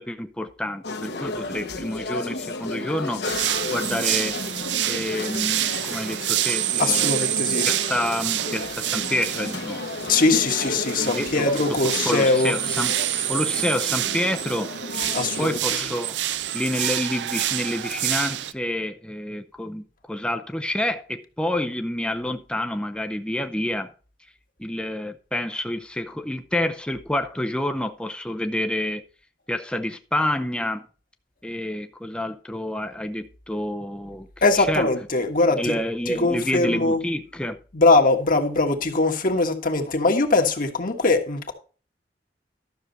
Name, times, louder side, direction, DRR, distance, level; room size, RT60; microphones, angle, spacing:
voice 1, 0.0-3.2 3.7-4.4 4.9-9.9 10.2-10.3 10.9-11.5 12.0-12.9 13.3-16.2 16.5-23.9 24.6-29.0 29.5-30.8 31.4-34.3 34.6-34.9 35.5-37.6, left 1 dB, 5° left, 0.5 m, -28 dB
sound 1, 0.8-15.6, left 2 dB, 70° left, 1.1 m, -33 dB
sound 2, 3.2-18.5, right 13 dB, 80° right, 0.5 m, -27 dB
voice 2, 6.8-7.7 10.0-12.5 15.1-15.8 34.4-35.8 36.1-37.0 37.7-41.5, left 3 dB, 50° left, 1.5 m, -21 dB
12.5 x 6.5 x 4.0 m
head